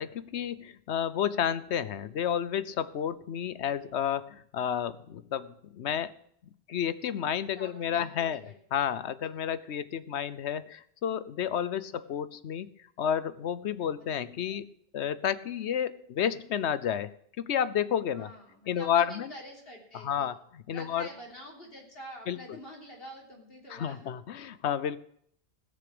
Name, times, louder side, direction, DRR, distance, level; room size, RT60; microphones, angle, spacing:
voice 1, 0.0-6.1 6.7-8.4 8.7-12.7 13.0-14.7 14.9-18.3 18.7-19.3 19.9-21.1 22.3-22.6 23.7-25.0, left 9 dB, 85° left, 16 dB, 1.0 m, -31 dB
voice 2, 7.5-8.5 9.2-9.3 13.9-14.1 18.1-20.3 20.7-24.1, equal, 60° left, 0 dB, 3.7 m, -47 dB
16.5 x 6.8 x 7.8 m, 0.67 s
omnidirectional pair, 1.1 m